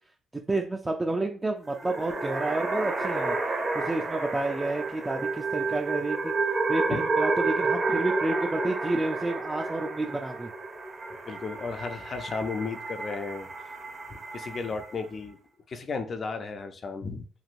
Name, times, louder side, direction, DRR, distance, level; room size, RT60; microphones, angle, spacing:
voice 1, 0.5-3.4 3.7-6.3 6.7-10.5, right 2 dB, 20° right, 0.4 m, -30 dB
sound 1, 1.7-15.0, right 3 dB, 35° right, 0.7 m, -30 dB
voice 2, 11.3-13.5 14.3-15.4 15.7-17.2, left 4 dB, 45° left, 0.4 m, -34 dB
3.0 x 2.6 x 2.5 m
cardioid pair, 90°, 0 cm